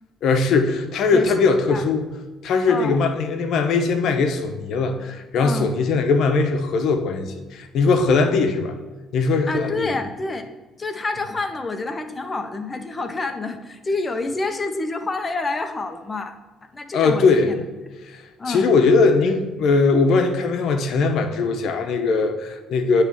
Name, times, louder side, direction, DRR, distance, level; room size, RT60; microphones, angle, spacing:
voice 1, 0.2-2.1 2.4-8.7 9.1-10.0 16.9-17.5 18.0-23.0, left 4 dB, 65° left, 5 dB, 0.8 m, -20 dB
voice 2, 2.7-3.0 5.4-5.7 9.5-10.5 10.8-16.3 16.6-17.6 18.4-18.7, left 3 dB, 20° left, 7 dB, 0.6 m, -28 dB
8.5 x 3.2 x 6.2 m, 1.2 s
cardioid pair, 130°, 0 cm